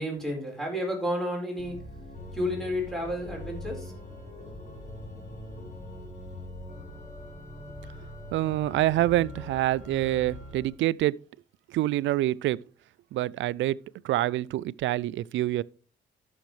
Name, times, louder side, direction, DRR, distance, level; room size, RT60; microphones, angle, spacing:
voice 1, 0.0-1.8 2.3-3.9, equal, ahead, 4.2 m, -31 dB
Organ, 1.5-10.8, left 1 dB, 35° left, 3.4 m, -42 dB
voice 2, 8.3-11.1 11.7-12.6 13.1-13.8 14.0-15.6, right 15 dB, 70° right, 0.4 m, -26 dB
13.5 x 6.4 x 3.2 m
cardioid pair, 90°, 20 cm